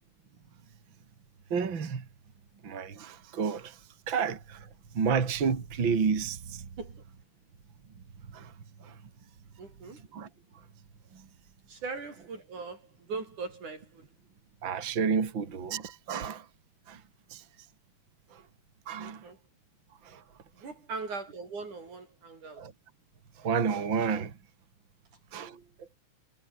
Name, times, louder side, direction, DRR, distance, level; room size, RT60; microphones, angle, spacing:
voice 1, 1.5-2.0 2.6-3.8 4.1-4.7 4.9-6.7 8.3-8.5 8.8-8.9 10.1-10.3 11.1-11.2 14.6-16.5 16.9-17.0 17.3-17.4 18.3-18.4 18.9-19.2 20.0-20.2 22.6-22.7 23.4-24.3 25.3-25.9, right 6 dB, 40° right, 3.2 m, -30 dB
voice 2, 9.6-10.0 11.7-14.1 19.0-19.4 20.5-22.6, right 4 dB, 85° right, 7.8 m, -40 dB
omnidirectional pair, 3.4 m